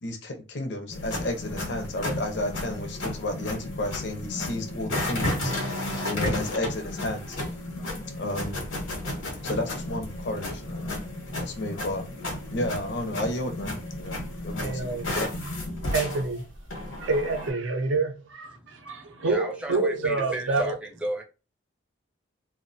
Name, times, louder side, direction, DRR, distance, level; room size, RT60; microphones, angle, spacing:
voice 1, 0.0-7.4 8.2-8.6 9.4-10.8 11.4-12.0 12.5-14.9 15.2-15.3, left 1 dB, 60° left, 0.5 m, -32 dB
sound 1, 0.9-17.5, left 1 dB, 80° left, 0.9 m, -33 dB
voice 2, 14.6-15.2 15.9-16.5 17.0-18.5 18.8-20.7, right 3 dB, 75° right, 0.5 m, -27 dB
voice 3, 18.5-21.2, right 1 dB, 5° right, 0.4 m, -34 dB
2.4 x 2.1 x 2.5 m
head